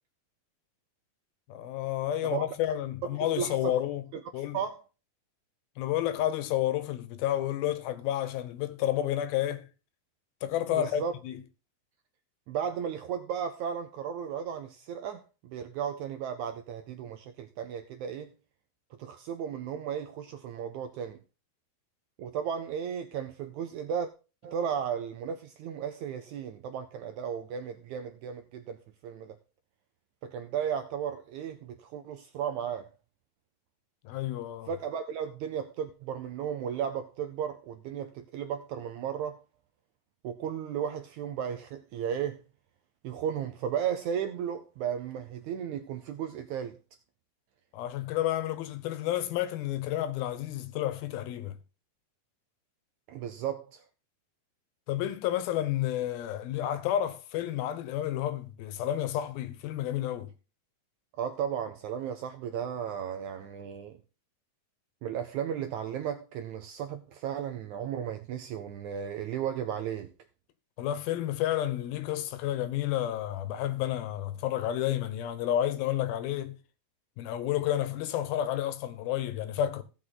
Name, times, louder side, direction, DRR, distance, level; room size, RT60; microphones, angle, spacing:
voice 1, 1.5-4.0 4.3-4.6 5.8-9.7 10.4-11.4 34.0-34.7 47.7-51.6 54.9-60.3 70.8-76.6 77.2-79.8, left 12 dB, 85° left, 2.9 m, -30 dB
voice 2, 3.4-3.7 4.5-4.8 10.7-11.1 12.5-18.3 19.0-21.2 22.2-24.1 24.4-29.4 30.2-32.9 34.7-39.4 40.2-42.4 43.0-46.8 53.1-53.8 61.2-64.0 65.0-70.1, right 8 dB, 80° right, 1.7 m, -35 dB
15.5 x 6.3 x 3.9 m
omnidirectional pair, 4.1 m